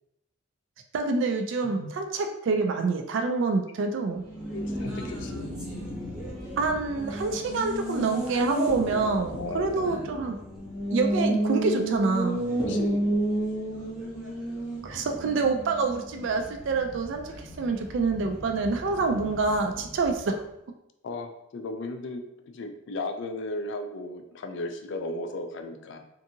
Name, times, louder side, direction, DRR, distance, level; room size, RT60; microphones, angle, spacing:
voice 1, 0.9-4.2 6.6-10.4 10.9-12.4 14.8-17.2 17.6-20.4, right 4 dB, 60° right, 5 dB, 0.3 m, -26 dB
Race car auto racing, 4.1-20.4, right 1 dB, 5° right, 0.6 m, -32 dB
voice 2, 4.5-5.5 9.3-10.1 12.6-13.1 21.0-26.0, left 2 dB, 60° left, 6 dB, 0.3 m, -36 dB
2.6 x 2.6 x 2.7 m, 0.81 s
head